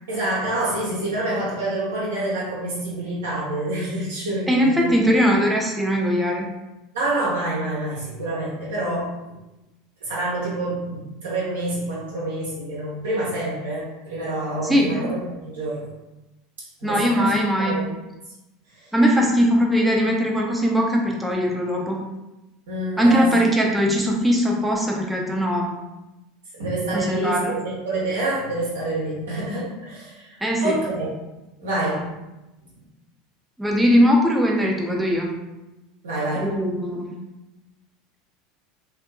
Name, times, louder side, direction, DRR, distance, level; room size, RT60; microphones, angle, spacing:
voice 1, 0.1-4.8 6.9-9.1 10.0-15.9 16.6-17.3 17.6-17.8 18.7-18.9 22.7-23.3 26.5-31.1 31.6-32.1 36.0-36.5, right 2 dB, 80° right, -7 dB, 1.0 m, -27 dB
voice 2, 4.5-6.5 14.6-15.1 16.8-17.8 18.9-22.0 23.0-25.7 26.9-27.5 30.4-30.8 33.6-35.3 36.4-37.1, equal, 5° right, -1 dB, 0.6 m, -20 dB
2.6 x 2.5 x 2.3 m, 1.0 s
hypercardioid pair, 80°, 0 cm